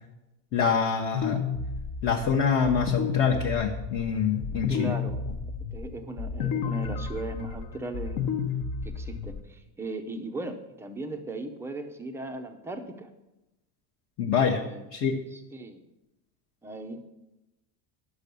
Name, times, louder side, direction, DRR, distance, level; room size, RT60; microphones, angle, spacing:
voice 1, 0.5-1.4 2.0-4.9 14.2-14.6 14.9-15.2, left 6 dB, 30° left, 0 dB, 0.8 m, -25 dB
sound 1, 1.1-9.4, left 6 dB, 55° left, 1.0 m, -32 dB
voice 2, 4.7-5.2 5.6-8.2 8.8-13.1 14.4-14.8 15.3-15.8 16.6-17.0, right 2 dB, 5° right, 5 dB, 0.5 m, -37 dB
10.5 x 6.2 x 6.8 m, 0.97 s
cardioid pair, 165°, 44 cm